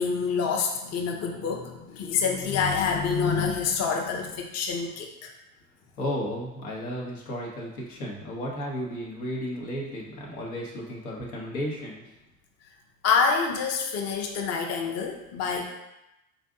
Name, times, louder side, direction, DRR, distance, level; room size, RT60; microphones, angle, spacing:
voice 1, 0.0-5.3 13.0-15.6, left 5 dB, 35° left, 1 dB, 0.6 m, -27 dB
voice 2, 6.0-12.0, equal, 85° left, -3 dB, 1.0 m, -33 dB
3.9 x 2.5 x 3.6 m, 0.91 s
hypercardioid pair, 65°, 43 cm